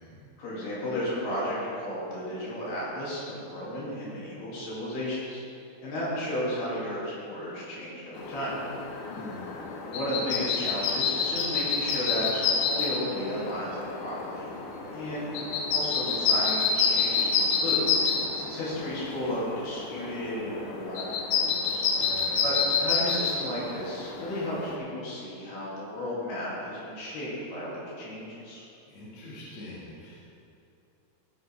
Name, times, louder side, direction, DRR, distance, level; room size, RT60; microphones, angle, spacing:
voice 1, 0.4-5.4 5.8-8.5 9.8-14.5 14.9-15.3 15.7-21.1 21.4-22.2 22.4-28.6, equal, 65° left, -7 dB, 4.5 m, -34 dB
sound 1, 8.2-24.8, left 5 dB, 85° left, 3.3 m, -29 dB
voice 2, 9.1-9.6 21.9-22.4 28.9-30.2, left 2 dB, 50° left, -7 dB, 2.8 m, -44 dB
16.0 x 8.4 x 3.5 m, 2.6 s
omnidirectional pair, 4.9 m